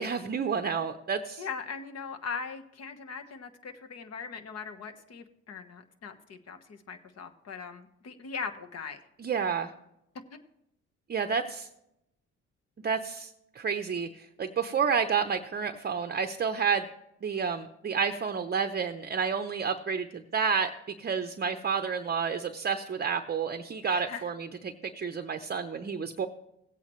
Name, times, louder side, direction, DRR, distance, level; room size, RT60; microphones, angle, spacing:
voice 1, 0.0-1.5 9.2-9.7 11.1-11.7 12.8-16.8 17.2-20.7 21.0-26.3, right 6 dB, 35° right, 7 dB, 0.6 m, -30 dB
voice 2, 1.4-9.0 23.9-24.2, left 5 dB, 55° left, 7 dB, 1.2 m, -40 dB
17.5 x 8.3 x 3.1 m, 0.82 s
cardioid pair, 90°, 30 cm